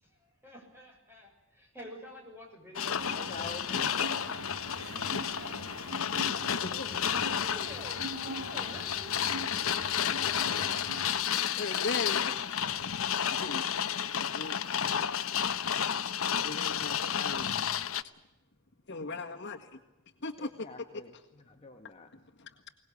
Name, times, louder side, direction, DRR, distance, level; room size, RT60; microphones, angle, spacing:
voice 1, 0.0-4.2 6.2-9.2, equal, 10° right, 0 dB, 7.0 m, -49 dB
sound 1, 2.8-18.0, left 8 dB, 75° left, 0.9 m, -31 dB
sound 2, 3.0-11.1, right 1 dB, 75° right, 3.5 m, -43 dB
voice 2, 3.2-3.7 3.9-4.3 12.0-12.3 20.4-22.1, left 3 dB, 30° left, 4 dB, 1.4 m, -47 dB
voice 3, 6.6-7.0 11.5-12.2 13.4-13.6 14.1-14.6 16.4-17.5 18.9-19.7 20.2-20.5 22.1-22.7, left 3 dB, 55° left, 3 dB, 1.8 m, -38 dB
23.0 x 19.5 x 8.5 m, 1.0 s
head